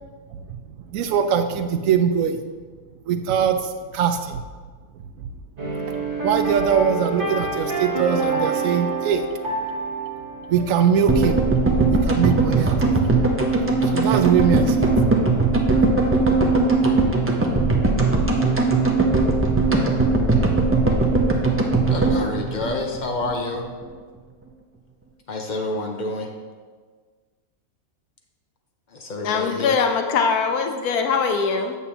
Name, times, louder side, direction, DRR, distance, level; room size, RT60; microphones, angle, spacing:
voice 1, 0.9-2.4 3.1-3.6 3.9-4.4 6.2-9.2 10.5-11.4 12.1-13.1 13.9-14.9, right 7 dB, 70° right, 8 dB, 0.9 m, -21 dB
sound 1, 5.6-11.9, right 3 dB, 40° right, 1.3 m, -27 dB
sound 2, 11.1-23.3 23.6-23.7 23.8-23.9, right 3 dB, 20° right, 0.4 m, -19 dB
voice 2, 21.9-23.6 25.3-26.3 28.9-29.7, left 2 dB, 40° left, 2 dB, 0.7 m, -28 dB
voice 3, 29.2-31.7, left 5 dB, 85° left, 5 dB, 1.2 m, -22 dB
8.3 x 7.0 x 2.9 m, 1.5 s
omnidirectional pair, 1.6 m